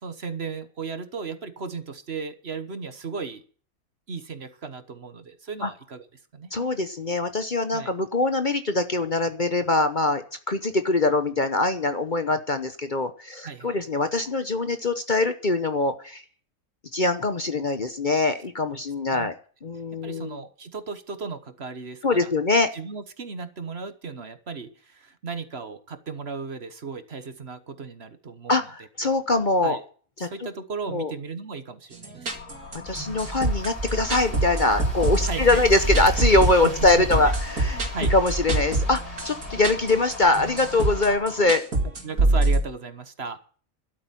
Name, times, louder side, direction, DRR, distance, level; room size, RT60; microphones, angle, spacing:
voice 1, 0.0-3.4 4.1-6.1 6.3-6.5 7.7-7.9 13.4-13.8 19.1-19.3 20.0-22.3 22.7-28.6 29.6-29.8 30.2-32.3 35.2-35.6 36.6-37.1 37.9-38.1 41.1-41.2 42.0-43.4, right 5 dB, 50° right, 11 dB, 1.5 m, -35 dB
voice 2, 6.5-16.2 16.9-19.3 19.6-20.4 22.0-22.7 28.5-29.8 30.2-30.3 30.9-31.1 32.7-41.6, left 2 dB, 40° left, 9 dB, 1.0 m, -23 dB
sound 1, 31.9-42.6, right 2 dB, 80° right, 3.2 m, -26 dB
sound 2, 32.3-41.5, left 7 dB, 65° left, 1.6 m, -40 dB
sound 3, 32.9-41.2, right 2 dB, 25° right, 4.9 m, -31 dB
12.0 x 8.7 x 9.1 m, 0.43 s
omnidirectional pair, 1.5 m